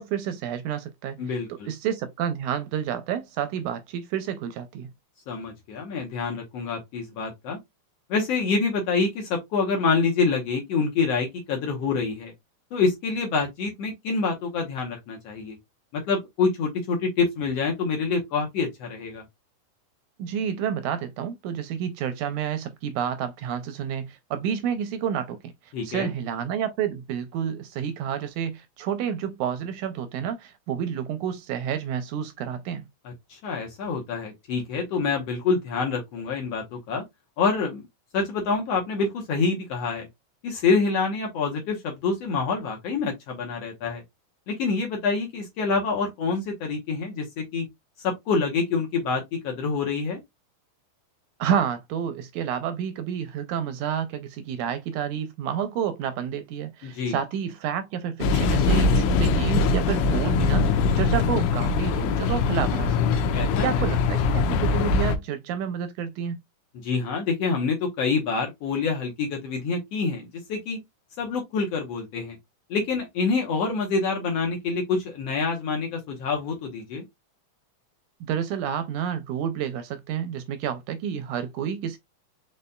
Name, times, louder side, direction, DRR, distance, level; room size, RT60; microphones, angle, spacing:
voice 1, 0.0-4.9 20.2-32.8 51.4-63.3 63.6-66.4 78.3-82.0, right 8 dB, 80° right, 1.9 m, -30 dB
voice 2, 1.2-1.7 5.3-7.6 8.1-12.3 12.7-15.6 15.9-19.2 25.7-26.1 33.0-37.0 37.4-37.8 38.1-40.1 40.4-44.0 44.5-47.7 48.0-50.2 56.8-57.2 63.3-63.8 66.8-70.8 71.2-72.4 72.7-77.0, left 4 dB, 65° left, 1.7 m, -26 dB
sound 1, 58.2-65.2, left 4 dB, 80° left, 2.1 m, -22 dB
5.3 x 4.0 x 2.2 m
omnidirectional pair, 3.7 m